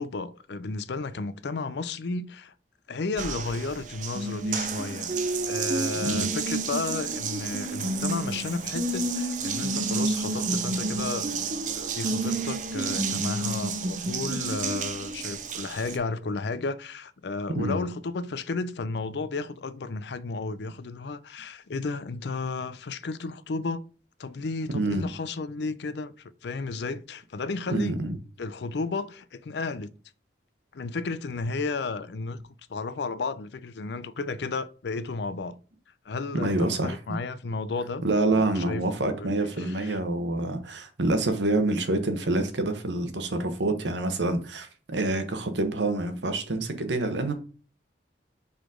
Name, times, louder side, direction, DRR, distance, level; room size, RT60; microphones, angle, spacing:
voice 1, 0.0-2.5 2.9-11.3 11.7-23.8 24.2-28.0 28.4-29.9 30.7-32.4 32.7-35.6 36.1-38.0 38.3-38.8 39.2-40.0, left 3 dB, 65° left, 0.5 m, -33 dB
Water tap faucet, 3.2-16.0, right 3 dB, 45° right, 0.6 m, -30 dB
voice 2, 24.7-25.0 27.7-28.2 36.3-37.2 38.0-47.3, right 2 dB, 75° right, 1.1 m, -27 dB
5.0 x 4.0 x 4.9 m
head